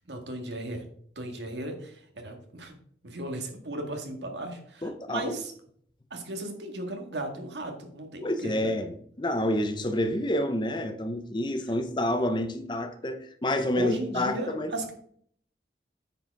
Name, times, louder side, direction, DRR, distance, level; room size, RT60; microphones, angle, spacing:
voice 1, 0.1-0.8 1.2-2.7 3.0-5.5 6.1-8.7 13.8-14.9, right 1 dB, 85° right, 4 dB, 1.8 m, -36 dB
voice 2, 4.8-5.4 8.2-14.7, left 1 dB, 25° left, 8 dB, 0.7 m, -29 dB
9.1 x 4.9 x 4.6 m, 0.62 s
head